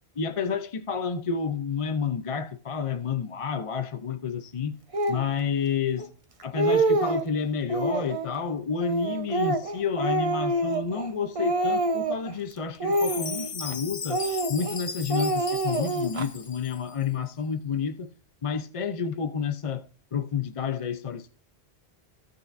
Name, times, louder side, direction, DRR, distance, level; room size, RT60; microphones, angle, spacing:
voice 1, 0.2-4.7 5.1-6.1 6.4-14.2 14.5-18.1 18.4-21.4, left 6 dB, 40° left, 0.6 m, -30 dB
Speech, 4.9-5.3 6.0-6.1 6.4-7.3 7.7-8.3 8.8-11.1 11.4-12.3 12.8-13.7 14.1-14.8 15.1-16.3, right 2 dB, 35° right, 0.9 m, -26 dB
Chime, 12.9-16.9, left 5 dB, 55° left, 1.1 m, -37 dB
16.0 x 5.7 x 2.6 m
omnidirectional pair, 1.1 m